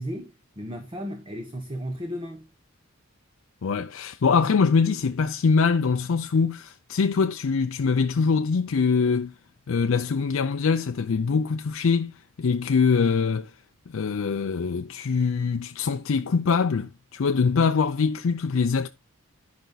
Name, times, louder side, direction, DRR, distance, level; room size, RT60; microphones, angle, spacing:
voice 1, 0.0-2.5, equal, 25° right, 1.1 m, -34 dB
voice 2, 3.6-9.3 9.7-12.1 12.4-13.5 13.9-18.9, left 5 dB, 75° left, 0.5 m, -23 dB
11.5 x 5.3 x 3.9 m
head